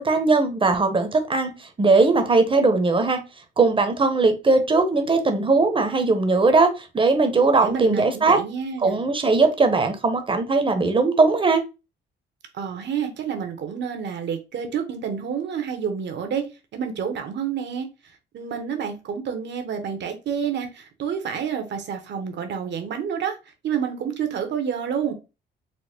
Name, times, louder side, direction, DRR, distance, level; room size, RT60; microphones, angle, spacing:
voice 1, 0.0-1.5 1.8-3.2 3.6-8.4 8.8-11.6, right 3 dB, 25° right, 0.9 m, -19 dB
voice 2, 7.6-9.1 12.5-16.4 16.7-17.9 18.3-23.4 23.6-25.1, right 7 dB, 65° right, 1.0 m, -29 dB
4.2 x 2.1 x 3.4 m
cardioid pair, 90°, 20 cm